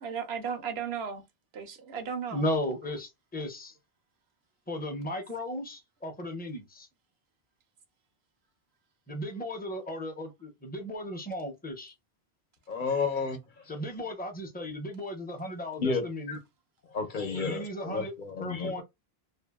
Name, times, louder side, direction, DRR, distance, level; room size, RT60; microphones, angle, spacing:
voice 1, 0.0-1.2 1.5-2.5, right 6 dB, 75° right, 1.0 m, -35 dB
voice 2, 2.3-3.7 4.7-6.9 9.1-11.9 13.7-16.4 17.3-18.1 18.4-18.8, left 1 dB, 10° left, 0.6 m, -35 dB
voice 3, 12.7-13.8 15.8-16.0 16.3-16.4 16.9-18.8, left 4 dB, 55° left, 0.9 m, -32 dB
2.7 x 2.6 x 2.2 m
omnidirectional pair, 1.1 m